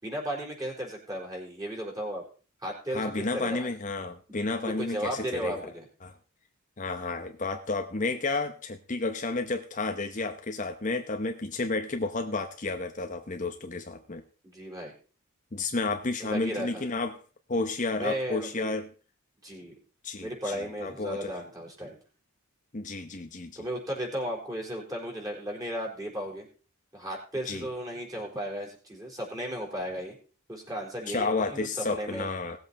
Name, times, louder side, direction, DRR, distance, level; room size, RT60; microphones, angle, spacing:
voice 1, 0.0-2.2 2.6-3.7 4.6-5.9 14.4-14.9 16.2-16.9 17.5-17.7 18.0-18.8 19.4-19.8 20.2-22.0 23.6-26.5 26.9-30.2 30.5-32.3, equal, 15° right, -1 dB, 4.4 m, -35 dB
voice 2, 2.9-5.7 6.0-6.1 6.8-14.2 15.5-17.2 17.5-18.9 20.0-21.3 22.7-23.5 27.5-27.7 31.1-32.6, left 3 dB, 35° left, 6 dB, 0.9 m, -31 dB
18.5 x 8.0 x 4.2 m, 0.37 s
head